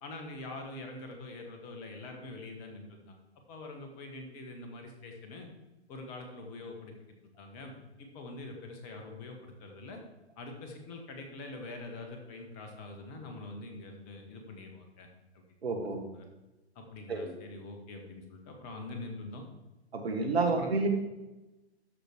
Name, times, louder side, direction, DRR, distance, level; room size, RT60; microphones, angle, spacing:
voice 1, 0.0-3.2 3.5-5.5 5.9-6.9 7.4-7.7 8.0-10.0 10.4-15.1 15.3-15.4 16.1-16.2 16.7-19.4 20.4-20.7, left 2 dB, 30° left, 3 dB, 1.6 m, -44 dB
voice 2, 15.6-16.0 17.1-17.3 19.9-20.9, right 3 dB, 65° right, 4 dB, 1.8 m, -30 dB
13.0 x 5.0 x 4.6 m, 1.0 s
figure-of-eight pair, 120°, 34 cm